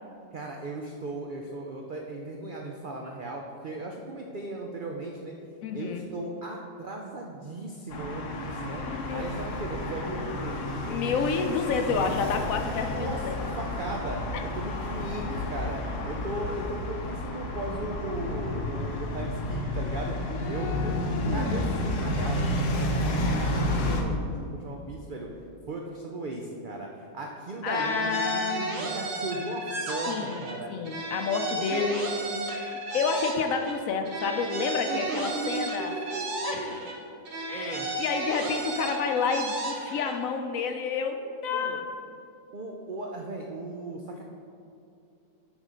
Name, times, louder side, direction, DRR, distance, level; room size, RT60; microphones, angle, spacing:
voice 1, 0.3-5.4 5.7-8.8 9.1-11.5 11.9-12.2 12.9-13.2 13.6-20.2 20.5-21.0 21.3-25.3 25.7-30.7 31.6-31.9 34.9-36.8 37.5-37.9 41.5-41.8 42.5-44.2, right 2 dB, 80° right, 0 dB, 0.4 m, -37 dB
voice 2, 5.6-6.0 8.9-9.3 10.9-13.4 14.3-14.5 20.3-21.7 27.6-28.8 30.1-30.4 30.7-35.9 36.4-36.8 37.5-41.8, left 5 dB, 70° left, 6 dB, 0.9 m, -30 dB
sound 1, 7.9-24.0, left 1 dB, 85° left, 1.3 m, -31 dB
sound 2, 27.7-30.6 30.8-33.8 34.0-37.0 37.2-40.2, right 2 dB, 60° right, 1.2 m, -34 dB
7.3 x 4.2 x 5.1 m, 2.6 s
omnidirectional pair, 1.6 m